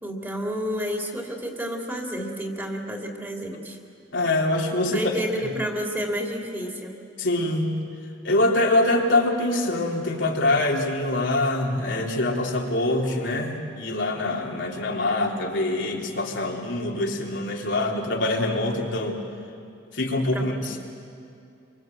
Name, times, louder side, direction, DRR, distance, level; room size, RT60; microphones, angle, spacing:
voice 1, 0.0-3.8 4.9-7.0 20.3-20.8, equal, 10° right, 1 dB, 2.8 m, -30 dB
voice 2, 4.1-5.2 7.2-7.8 8.2-19.2 19.9-20.8, left 2 dB, 85° left, -1 dB, 3.4 m, -24 dB
27.0 x 23.5 x 7.8 m, 2.5 s
head